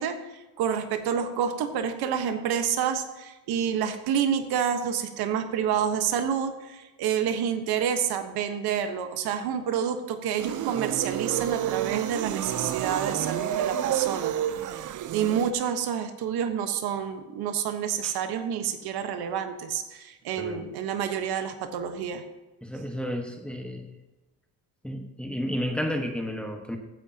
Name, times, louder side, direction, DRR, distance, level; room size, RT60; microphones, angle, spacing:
voice 1, 0.0-14.3 15.1-22.2, right 8 dB, 85° right, 7 dB, 1.3 m, -28 dB
sound 1, 10.4-15.5, right 11 dB, 55° right, 0.7 m, -29 dB
voice 2, 22.6-23.9 24.8-26.8, equal, 5° left, 3 dB, 1.4 m, -32 dB
15.5 x 9.9 x 2.9 m, 1.1 s
cardioid pair, 115°, 37 cm